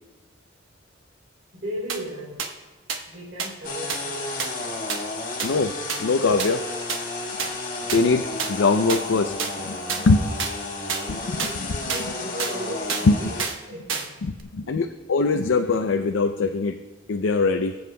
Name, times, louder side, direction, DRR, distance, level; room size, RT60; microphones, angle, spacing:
voice 1, 1.5-2.4 3.1-4.6 11.9-14.2 14.6-14.9, equal, 50° right, -8 dB, 3.0 m, -36 dB
sound 1, 1.9-2.0 2.4-2.5 2.9-3.0 3.4-3.5 3.9-4.0 4.4-4.5 4.9-5.0 5.4-5.5 5.9-6.0 6.4-6.5 6.9-7.0 7.4-7.5 7.9-8.0 8.4-8.5 8.9-9.0 9.4-9.5 9.9-10.0 10.4-10.5 10.9-11.0 11.4-11.5 11.9-12.0 12.4-12.5 12.9-13.1 13.4-13.6 13.9-14.1 14.4-14.5, right 6 dB, 80° right, 1.0 m, -27 dB
sound 2, 3.6-13.4, left 2 dB, 40° left, 1.6 m, -32 dB
voice 2, 5.4-6.6 7.9-10.3 11.1-11.9 13.1-13.2 14.2-16.8 17.1-17.8, left 3 dB, 75° left, 6 dB, 0.4 m, -22 dB
23.0 x 7.9 x 2.2 m, 1.2 s
head